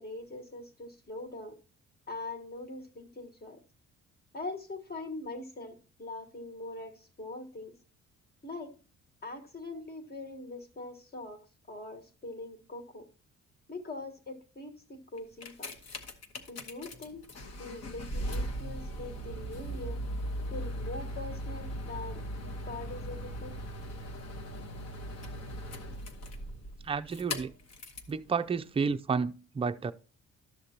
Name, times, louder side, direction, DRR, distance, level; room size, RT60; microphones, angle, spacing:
voice 1, 0.0-1.6 2.1-3.6 4.3-7.7 8.4-8.7 9.2-11.4 11.7-13.1 13.7-15.7 16.5-17.2 17.6-20.0 20.5-23.5, left 2 dB, 30° left, 1.4 m, -42 dB
sound 1, 15.2-28.2 28.9-29.0, equal, 55° left, 1.2 m, -39 dB
voice 2, 26.8-27.5 28.1-29.9, right 5 dB, 20° right, 0.4 m, -31 dB
12.0 x 6.5 x 2.9 m
cardioid pair, 90°, 30 cm